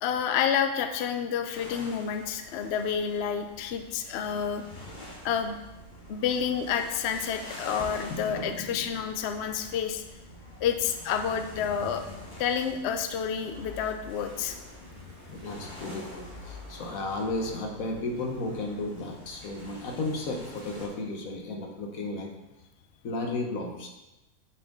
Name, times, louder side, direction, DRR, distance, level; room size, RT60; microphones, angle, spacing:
voice 1, 0.0-4.6 5.2-5.6 6.1-10.0 10.6-12.0 12.4-14.6, left 7 dB, 65° left, 7 dB, 0.7 m, -29 dB
sound 1, 1.5-20.9, left 2 dB, 35° left, 1.8 m, -47 dB
sound 2, 4.3-12.3, right 4 dB, 45° right, 1.3 m, -53 dB
voice 2, 8.1-9.0 15.3-22.3 23.0-23.9, left 2 dB, 80° left, 2 dB, 1.4 m, -34 dB
sound 3, 13.2-18.3, left 3 dB, 80° right, 1.9 m, -49 dB
6.5 x 6.2 x 3.6 m, 1.0 s
omnidirectional pair, 1.4 m